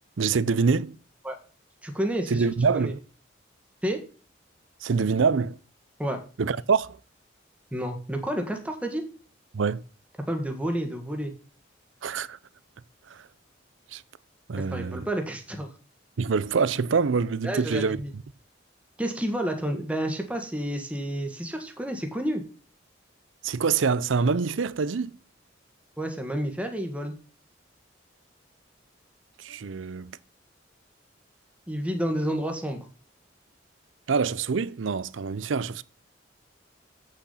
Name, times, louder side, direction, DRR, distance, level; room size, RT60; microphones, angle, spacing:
voice 1, 0.2-0.9 2.3-3.0 4.8-5.6 6.4-7.0 9.5-9.8 12.0-12.4 13.1-13.3 13.9-14.0 14.5-15.0 16.2-18.0 23.4-25.1 29.4-30.2 34.1-35.8, right 5 dB, 85° right, 0.5 m, -25 dB
voice 2, 1.8-2.4 2.7-2.9 3.8-4.0 6.0-6.2 7.7-9.0 10.3-11.3 14.7-15.7 17.4-18.1 19.0-22.4 26.0-27.2 31.7-32.8, right 1 dB, 5° right, 1.5 m, -30 dB
8.3 x 6.6 x 5.6 m
head